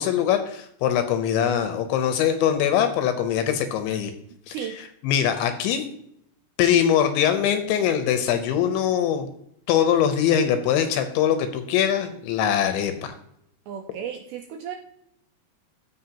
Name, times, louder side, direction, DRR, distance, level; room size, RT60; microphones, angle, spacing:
voice 1, 0.0-4.1 4.5-5.9 6.6-9.3 9.7-13.1, left 9 dB, 80° left, 8 dB, 2.9 m, -22 dB
voice 2, 13.7-14.8, right 9 dB, 85° right, 3 dB, 2.5 m, -34 dB
15.5 x 5.4 x 2.9 m, 0.73 s
omnidirectional pair, 5.8 m